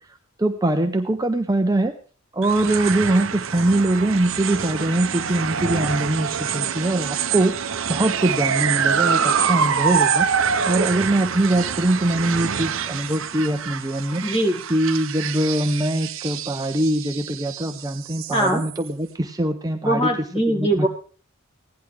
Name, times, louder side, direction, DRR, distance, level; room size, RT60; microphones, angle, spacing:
voice 1, 0.4-2.0 2.3-10.3 10.6-14.3 14.7-20.1 20.5-20.9, right 1 dB, 15° right, 5 dB, 0.6 m, -22 dB
sound 1, 2.4-18.9, right 7 dB, 60° right, 0.7 m, -25 dB
voice 2, 14.2-14.6 18.3-18.6 19.8-20.9, right 1 dB, 25° left, 2 dB, 2.4 m, -21 dB
16.5 x 10.5 x 3.4 m, 0.41 s
head